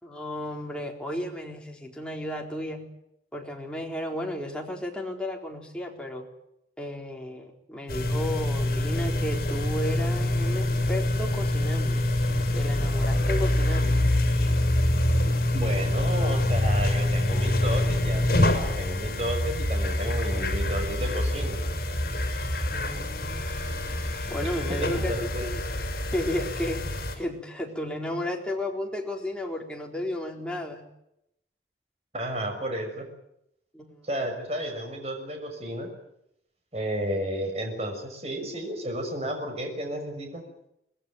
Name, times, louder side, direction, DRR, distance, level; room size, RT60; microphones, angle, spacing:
voice 1, 0.0-2.9 3.3-6.3 6.8-12.1 12.5-14.1 22.7-23.5 23.9-25.6 26.1-30.9 33.7-34.1, left 1 dB, 5° left, 0 dB, 4.1 m, -33 dB
sound 1, 7.9-27.2, left 1 dB, 55° left, 5.9 m, -26 dB
voice 2, 15.5-21.6 24.8-25.7 32.1-33.1 34.0-35.9 36.7-40.4, equal, 35° right, 3 dB, 6.1 m, -32 dB
24.5 x 20.0 x 9.3 m, 0.80 s
head